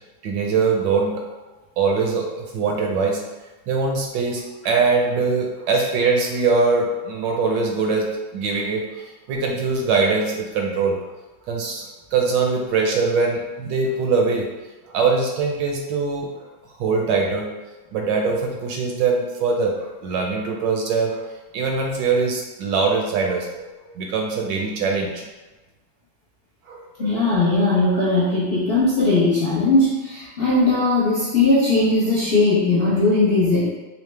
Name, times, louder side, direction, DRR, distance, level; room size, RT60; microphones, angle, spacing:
voice 1, 0.2-1.4 1.8-3.2 3.7-11.0 11.5-11.9 12.1-14.5 14.9-16.5 16.8-17.5 17.9-21.3 21.5-25.3 26.7-27.2, right 4 dB, 75° right, 1 dB, 1.1 m, -22 dB
voice 2, 27.0-33.7, left 2 dB, 90° left, -8 dB, 0.5 m, -19 dB
5.5 x 2.0 x 3.2 m, 1.2 s
omnidirectional pair, 2.3 m